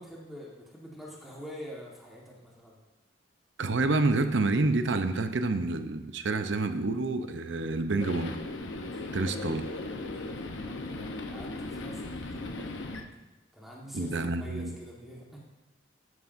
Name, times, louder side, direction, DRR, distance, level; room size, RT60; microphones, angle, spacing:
voice 1, 0.0-2.7 8.9-9.0 9.9-13.1 13.5-15.4, equal, ahead, -4 dB, 1.5 m, -46 dB
voice 2, 3.6-8.4 9.1-9.6 13.9-14.7, right 3 dB, 75° right, 9 dB, 0.7 m, -28 dB
sound 1, 8.0-13.0, left 2 dB, 80° left, 0.9 m, -37 dB
13.0 x 9.4 x 2.6 m, 1.1 s
head